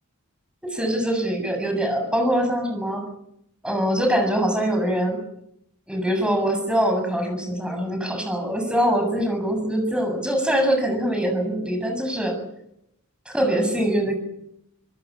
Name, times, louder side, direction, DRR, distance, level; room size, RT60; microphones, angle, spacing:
voice 1, 0.6-3.0 3.6-5.2 5.9-12.4 13.3-14.1, equal, 5° right, 4 dB, 7.3 m, -23 dB
25.5 x 20.5 x 8.5 m, 0.75 s
head